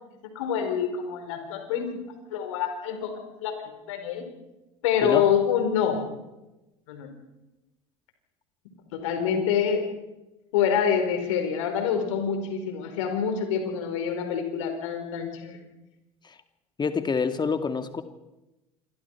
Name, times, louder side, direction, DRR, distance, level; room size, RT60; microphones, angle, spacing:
voice 1, 0.3-2.0 2.3-3.1 3.4-3.6 3.9-4.3 4.8-6.0 6.9-7.1 8.9-9.8 10.5-15.6, left 7 dB, 70° left, 5 dB, 4.8 m, -26 dB
voice 2, 16.8-18.0, left 5 dB, 25° left, 8 dB, 2.0 m, -26 dB
27.5 x 24.5 x 4.8 m, 0.98 s
hypercardioid pair, 70°, 17 cm